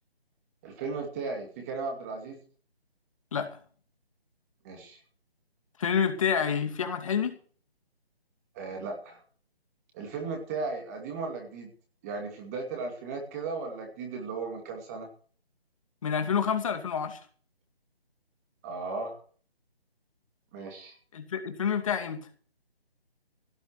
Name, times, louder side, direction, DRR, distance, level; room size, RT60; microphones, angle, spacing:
voice 1, 0.6-2.4 4.6-5.0 8.5-9.2 9.9-11.7 12.0-15.1 18.6-19.2 20.5-20.9, right 4 dB, 15° right, 2 dB, 2.4 m, -36 dB
voice 2, 5.8-7.4 16.0-17.2 21.1-22.3, left 7 dB, 30° left, 7 dB, 2.4 m, -28 dB
17.0 x 7.7 x 8.0 m, 0.43 s
figure-of-eight pair, 165°, 31 cm